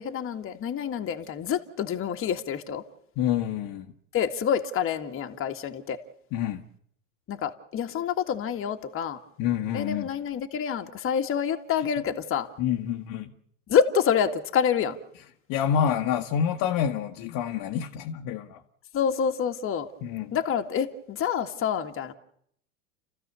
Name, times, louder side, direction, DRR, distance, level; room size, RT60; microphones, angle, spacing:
voice 1, 0.0-2.8 4.1-6.0 7.3-9.2 9.7-12.5 13.7-15.0 18.9-19.9 20.3-22.1, left 7 dB, 30° left, 2.0 m, -27 dB
voice 2, 3.2-3.9 6.3-6.6 9.4-10.1 12.6-13.3 15.5-18.6 20.0-20.3, left 9 dB, 50° left, 1.7 m, -27 dB
29.5 x 15.0 x 7.0 m
hypercardioid pair, 105°, 42 cm